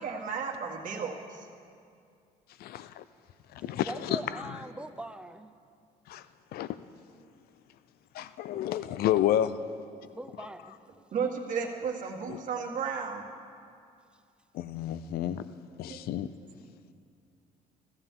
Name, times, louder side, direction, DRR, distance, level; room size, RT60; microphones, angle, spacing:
voice 1, 0.0-1.5 8.8-8.9 11.1-13.2 15.9-16.1, right 6 dB, 50° right, 0 dB, 1.7 m, -34 dB
voice 2, 2.6-3.0 3.5-4.2 6.1-6.2 6.5-6.8 8.1-9.5 12.3-12.4 14.5-15.4 15.8-16.3, left 11 dB, 65° left, 14 dB, 0.5 m, -30 dB
voice 3, 3.9-5.5 10.1-10.8, right 1 dB, 5° right, 9 dB, 0.5 m, -41 dB
15.0 x 14.5 x 3.7 m, 2.4 s
cardioid pair, 110°, 17 cm